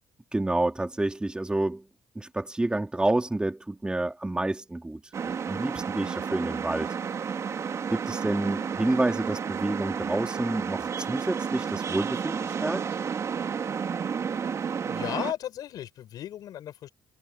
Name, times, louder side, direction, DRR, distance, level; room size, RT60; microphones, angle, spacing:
voice 1, 0.3-1.8 2.2-6.9 7.9-12.8, right 2 dB, 15° right, 3.8 m, -29 dB
sound 1, 5.1-15.3, right 6 dB, 45° right, 2.6 m, -31 dB
voice 2, 14.8-16.9, left 11 dB, 70° left, 7.4 m, -35 dB
supercardioid pair, 75°, 7 cm